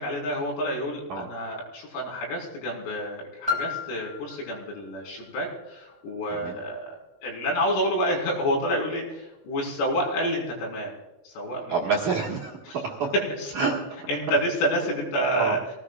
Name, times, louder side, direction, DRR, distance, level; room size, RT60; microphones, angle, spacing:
voice 1, 0.0-6.9 7.2-10.9 11.3-12.0 12.6-12.8 13.1-13.5 14.1-15.6, equal, 85° left, -2 dB, 7.3 m, -28 dB
Piano, 3.5-8.9 9.6-9.7, left 5 dB, 20° right, 0.7 m, -37 dB
voice 2, 6.3-6.6 11.7-13.1 13.5-13.7 15.4-15.6, right 4 dB, 60° right, -3 dB, 2.2 m, -28 dB
24.5 x 17.5 x 2.5 m, 0.99 s
omnidirectional pair, 6.0 m